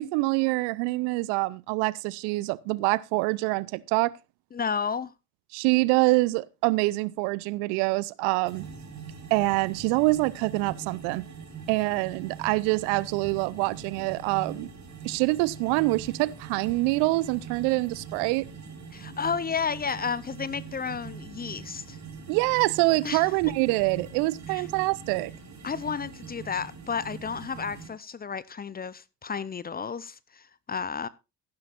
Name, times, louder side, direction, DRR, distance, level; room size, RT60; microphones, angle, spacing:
voice 1, 0.0-4.1 5.5-8.7 9.3-11.3 11.7-14.7 15.0-18.5 22.3-25.3, right 22 dB, 60° right, 0.7 m, -25 dB
voice 2, 4.5-5.1 18.9-22.0 23.0-23.2 24.5-24.6 25.6-31.1, left 6 dB, 20° left, 0.6 m, -32 dB
sound 1, 8.4-27.9, right 5 dB, 35° right, 4.6 m, -42 dB
14.5 x 12.0 x 2.5 m
hypercardioid pair, 65°, 47 cm